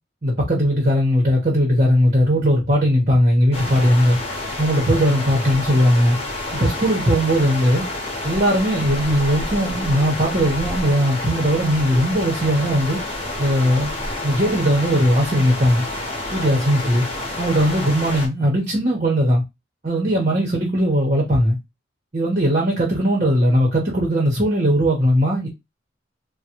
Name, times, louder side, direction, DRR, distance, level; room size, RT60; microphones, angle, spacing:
voice 1, 0.2-4.2 4.6-6.2 6.5-7.9 8.2-13.0 13.4-13.9 14.2-15.8 16.3-17.0 17.4-19.4 19.8-21.6 22.1-25.5, equal, 40° right, 0.9 m, -18 dB
sound 1, 3.5-18.3, left 2 dB, 30° left, 1.0 m, -29 dB
3.7 x 2.1 x 2.9 m
head